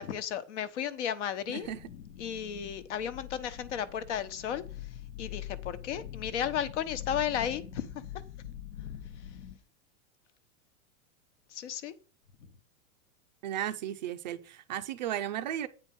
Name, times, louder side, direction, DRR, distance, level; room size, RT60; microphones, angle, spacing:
voice 1, 0.0-1.7 2.2-7.9 8.1-8.2 11.5-11.9, left 9 dB, 60° left, 1.1 m, -34 dB
sound 1, 1.6-9.6, left 10 dB, 80° left, 1.1 m, -44 dB
voice 2, 13.4-15.7, right 11 dB, 35° right, 0.4 m, -35 dB
8.9 x 4.3 x 5.4 m
supercardioid pair, 170°, 40 cm